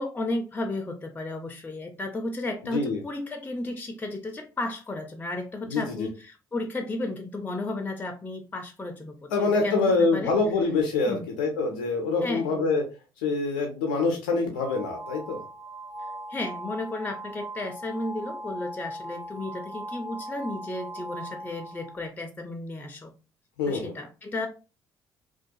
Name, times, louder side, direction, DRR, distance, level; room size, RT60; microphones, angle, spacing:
voice 1, 0.0-10.3 11.1-11.3 12.2-12.7 16.3-23.1 23.7-24.5, left 2 dB, 15° left, 6 dB, 0.4 m, -33 dB
voice 2, 2.6-3.0 5.7-6.1 9.3-12.8 13.2-15.4 23.6-23.9, left 3 dB, 85° left, 2 dB, 0.4 m, -25 dB
sound 1, 14.5-22.1, right 1 dB, 45° right, 1.0 m, -39 dB
2.4 x 2.2 x 2.6 m, 0.32 s
hypercardioid pair, 55°, 11 cm